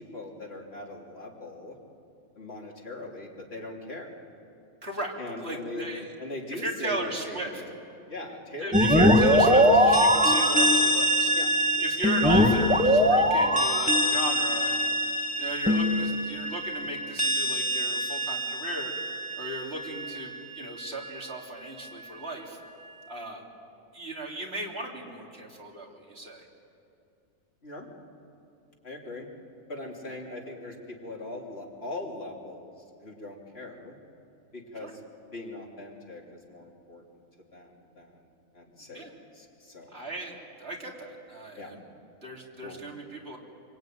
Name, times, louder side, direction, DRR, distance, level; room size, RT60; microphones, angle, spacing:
voice 1, 0.0-1.8 2.3-4.2 5.2-5.9 6.2-7.7 8.1-9.0 9.4-9.9 10.2-10.3 11.3-11.5 27.6-27.9 28.8-29.3 29.7-32.7 33.0-34.0 34.5-35.0 35.3-36.2 36.5-37.0 37.5-38.2 38.5-40.0 41.5-41.8 42.6-42.8, left 2 dB, 45° left, -1 dB, 3.5 m, -40 dB
voice 2, 4.8-5.1 5.4-6.1 6.5-7.5 8.6-11.3 11.8-15.0 15.4-18.9 19.3-22.6 23.1-23.4 23.9-26.5 30.1-30.2 34.8-34.9 38.8-39.1 39.9-40.3 40.6-41.8 42.2-43.4, right 1 dB, 50° right, -1 dB, 3.5 m, -36 dB
sound 1, 8.7-20.3, equal, 5° right, 1.7 m, -23 dB
25.0 x 24.5 x 9.3 m, 2.6 s
omnidirectional pair, 1.4 m